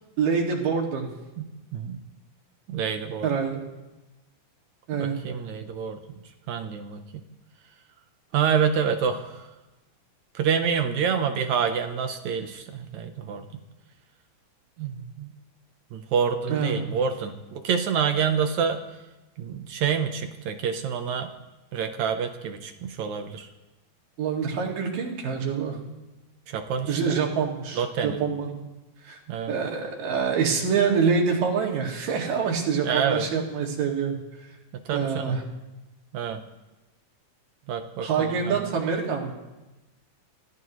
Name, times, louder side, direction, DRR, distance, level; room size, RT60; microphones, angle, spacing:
voice 1, 0.2-1.1 3.2-3.6 4.9-5.1 16.5-16.9 24.2-25.8 26.9-28.6 29.0-29.2 29.5-34.5 34.9-35.4 38.0-39.3, right 6 dB, 85° right, -1 dB, 3.9 m, -26 dB
voice 2, 1.4-2.0 2.7-3.4 4.9-6.0 6.5-7.2 8.3-9.5 10.3-13.6 14.8-15.3 15.9-18.8 19.4-21.3 21.7-23.5 26.5-27.2 27.7-28.2 29.3-29.5 32.8-33.2 34.9-35.4 36.1-36.4 37.7-38.7, right 7 dB, 70° right, 6 dB, 2.1 m, -27 dB
27.0 x 16.0 x 3.1 m, 1.1 s
omnidirectional pair, 3.7 m